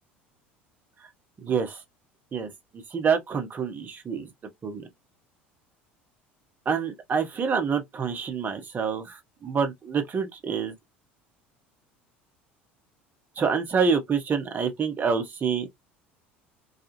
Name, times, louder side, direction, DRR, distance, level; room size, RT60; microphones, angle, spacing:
voice 1, 1.4-1.8 2.3-2.5 2.9-4.3 4.6-4.8 6.7-10.7 13.4-15.7, right 6 dB, 30° right, 0.9 m, -27 dB
2.4 x 2.3 x 2.9 m
figure-of-eight pair, 65°, 6 cm